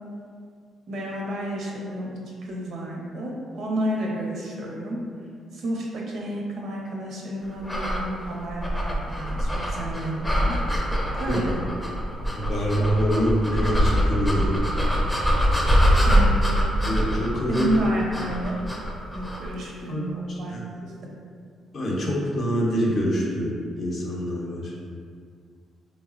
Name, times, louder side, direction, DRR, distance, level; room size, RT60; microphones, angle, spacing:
voice 1, 0.9-5.0 5.5-10.6 11.1-11.6 16.0-16.3 17.5-18.6 19.1-20.1 20.4-20.6, equal, 70° right, -2 dB, 0.5 m, -30 dB
sound 1, 7.6-19.5, equal, 5° left, 0.4 m, -24 dB
voice 2, 12.3-14.6 16.8-17.7 19.9-20.6 21.7-24.7, equal, 55° left, -3 dB, 0.6 m, -25 dB
3.2 x 2.0 x 2.4 m, 2.1 s
cardioid pair, 90°, 0 cm